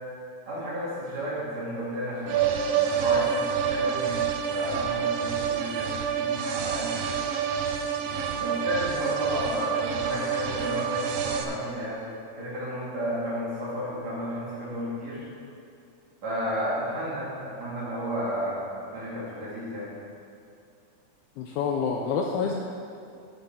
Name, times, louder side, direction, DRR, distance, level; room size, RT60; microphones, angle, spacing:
voice 1, 0.5-4.2 4.5-7.0 8.0-15.2 16.2-19.9, equal, 45° right, -8 dB, 3.3 m, -32 dB
sound 1, 2.3-11.4, right 8 dB, 85° right, 2.1 m, -28 dB
voice 2, 21.4-22.5, left 6 dB, 80° left, 1 dB, 2.2 m, -27 dB
10.0 x 9.6 x 4.5 m, 2.5 s
omnidirectional pair, 4.9 m